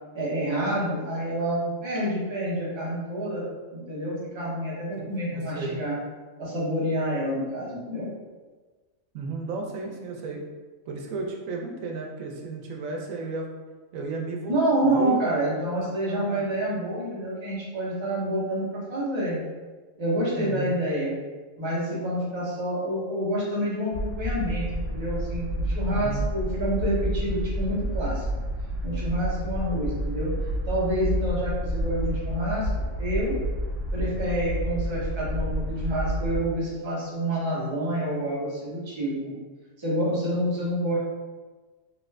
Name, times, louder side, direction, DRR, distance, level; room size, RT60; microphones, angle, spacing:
voice 1, 0.1-3.4 3.7-6.0 6.4-8.1 14.5-19.4 20.0-21.1 21.6-28.2 28.8-30.3 30.7-32.7 33.0-33.3 33.9-39.3 39.8-41.0, right 1 dB, 25° right, -6 dB, 0.7 m, -28 dB
voice 2, 5.0-5.8 9.1-10.4 10.9-13.5 13.9-15.2 15.5-15.7 16.1-16.6 20.4-20.7 25.9-26.3, right 3 dB, 90° right, 1 dB, 1.0 m, -34 dB
sound 1, 23.9-36.5, right 1 dB, 65° left, 1.1 m, -29 dB
3.0 x 2.5 x 3.2 m, 1.3 s
omnidirectional pair, 1.4 m